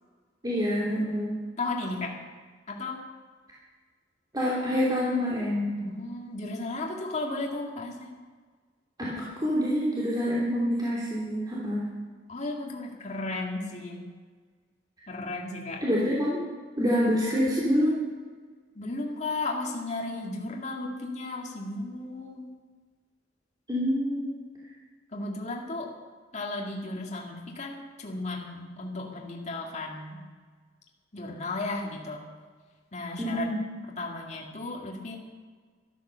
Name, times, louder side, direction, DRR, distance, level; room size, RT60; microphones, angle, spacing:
voice 1, 0.4-1.3 4.3-5.7 9.1-11.8 15.8-16.4 16.8-17.9 23.7-24.3 33.2-33.6, equal, 20° right, -7 dB, 3.0 m, -26 dB
voice 2, 1.6-2.2 2.7-3.0 5.8-8.1 12.3-14.0 15.1-15.8 18.8-22.5 25.1-25.9 26.3-30.2 31.1-32.2 32.9-33.5 34.0-35.2, left 2 dB, 40° left, -1 dB, 2.1 m, -34 dB
13.5 x 13.0 x 6.9 m, 1.5 s
head